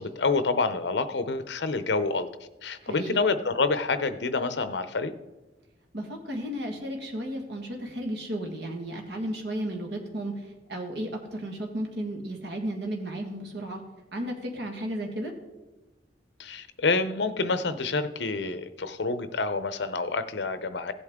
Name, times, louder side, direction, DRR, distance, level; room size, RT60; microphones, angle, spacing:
voice 1, 0.0-2.3 2.6-5.1 16.4-20.9, left 3 dB, 70° left, 11 dB, 0.7 m, -27 dB
voice 2, 2.8-3.2 5.9-13.8 14.1-15.3, right 1 dB, 70° right, 2 dB, 1.7 m, -34 dB
16.0 x 8.1 x 3.7 m, 1.1 s
head